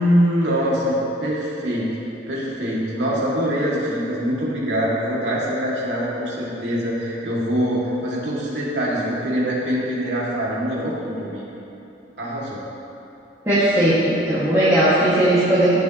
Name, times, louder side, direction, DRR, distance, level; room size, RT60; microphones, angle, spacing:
voice 1, 0.0-1.9 2.3-11.4 12.2-12.6, equal, 90° right, -6 dB, 2.4 m, -23 dB
voice 2, 13.5-15.8, right 1 dB, 15° right, -12 dB, 2.1 m, -17 dB
15.5 x 7.2 x 3.1 m, 2.9 s
head